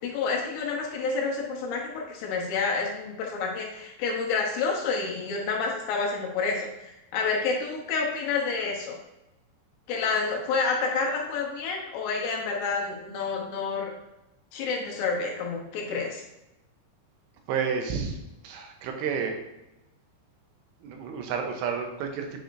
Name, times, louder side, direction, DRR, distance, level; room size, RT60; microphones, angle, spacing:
voice 1, 0.0-9.0 9.9-13.9 14.5-16.2, left 4 dB, 75° left, 0 dB, 2.7 m, -29 dB
voice 2, 17.5-18.2 18.4-19.4 20.8-22.4, right 6 dB, 80° right, 4 dB, 2.8 m, -30 dB
8.9 x 4.8 x 2.5 m, 0.92 s
omnidirectional pair, 5.3 m